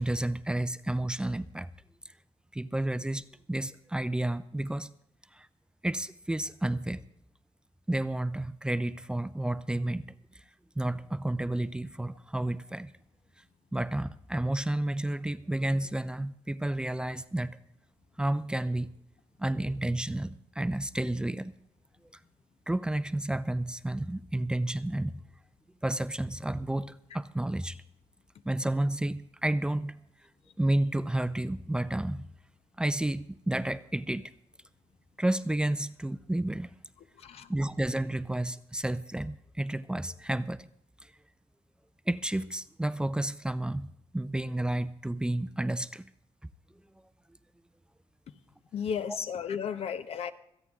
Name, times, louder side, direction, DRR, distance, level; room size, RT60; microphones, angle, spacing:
voice 1, 0.0-1.7 2.5-4.9 5.3-5.5 5.8-7.0 7.9-10.0 10.3-10.4 10.8-12.9 13.7-17.6 18.2-18.9 19.4-21.5 22.7-25.2 25.8-27.8 28.4-30.0 30.6-32.2 32.8-34.3 35.2-36.8 37.5-40.6 41.0-41.1 42.1-43.9 44.1-46.1 49.1-49.2, right 1 dB, 10° right, 0.5 m, -31 dB
voice 2, 48.7-50.3, left 7 dB, 75° left, 1.0 m, -33 dB
26.5 x 9.0 x 3.6 m
cardioid pair, 110°, 10 cm